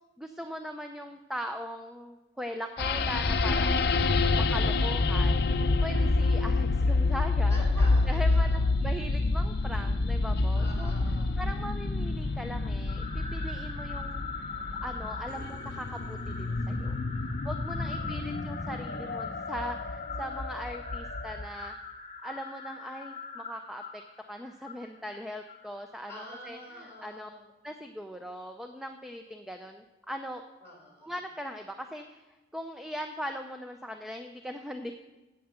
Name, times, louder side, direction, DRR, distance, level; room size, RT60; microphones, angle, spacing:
voice 1, 0.2-4.1 4.3-5.4 5.8-7.6 8.1-10.9 11.4-14.3 14.8-16.9 17.4-21.7 22.2-24.0 24.3-26.1 26.4-27.3 27.6-30.4 31.0-32.2 32.5-34.9, equal, ahead, 5 dB, 0.4 m, -40 dB
sound 1, 2.8-21.5, left 3 dB, 60° left, 0.5 m, -28 dB
voice 2, 7.5-8.7 10.5-11.4 17.8-18.4 26.1-27.5 30.6-31.1, equal, 15° left, -2 dB, 4.2 m, -46 dB
sound 2, 12.9-26.2, left 4 dB, 40° left, 1.3 m, -42 dB
9.2 x 7.8 x 6.6 m, 1.1 s
head